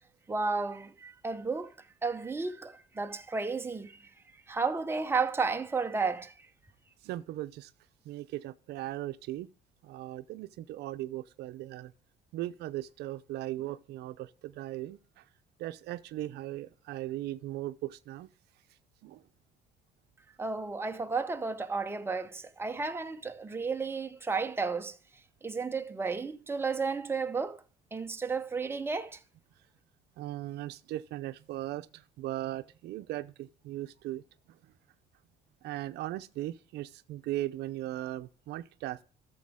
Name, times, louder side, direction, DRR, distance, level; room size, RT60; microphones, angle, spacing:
voice 1, 0.3-1.7 2.0-4.1 4.5-6.5 20.4-25.0 25.4-27.6 27.9-29.2, right 4 dB, 15° right, 0.9 m, -33 dB
voice 2, 7.0-7.7 8.0-9.5 9.8-11.9 12.3-15.2 15.6-18.3 19.0-19.2 30.2-34.2 34.5-34.6 35.6-39.0, right 15 dB, 75° right, 0.6 m, -38 dB
13.5 x 7.1 x 3.6 m
cardioid pair, 110°, 17 cm